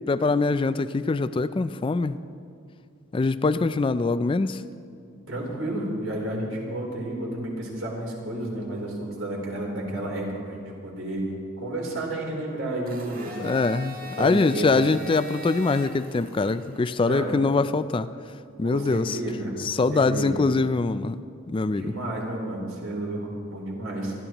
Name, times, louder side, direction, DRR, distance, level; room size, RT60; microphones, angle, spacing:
voice 1, 0.1-2.2 3.1-4.6 13.4-18.1 18.6-19.2 19.6-21.2 21.5-21.9, left 3 dB, 25° left, 13 dB, 0.3 m, -23 dB
voice 2, 5.3-11.3 11.6-13.4 14.1-14.7 17.0-17.3 18.6-19.6 19.9-20.5 21.7-24.1, right 1 dB, 70° right, -2 dB, 3.4 m, -31 dB
Domestic sounds home sounds, 12.9-16.9, right 1 dB, 45° right, 1.5 m, -41 dB
26.5 x 12.5 x 3.0 m, 2.4 s
head